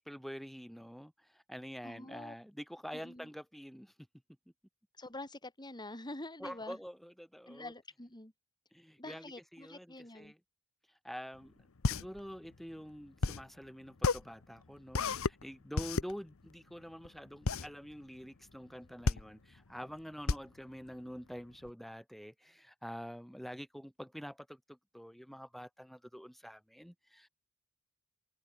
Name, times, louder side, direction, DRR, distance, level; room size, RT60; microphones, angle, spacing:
voice 1, 0.0-3.9 6.4-7.7 8.7-10.4 11.0-11.5 11.9-27.3, equal, ahead, 3.9 m, -47 dB
voice 2, 1.8-2.3 2.9-3.3 5.0-6.8 7.5-8.3 9.0-10.3, left 2 dB, 20° left, 4.4 m, -46 dB
sound 1, 11.4-21.7, left 3 dB, 65° left, 0.9 m, -34 dB
head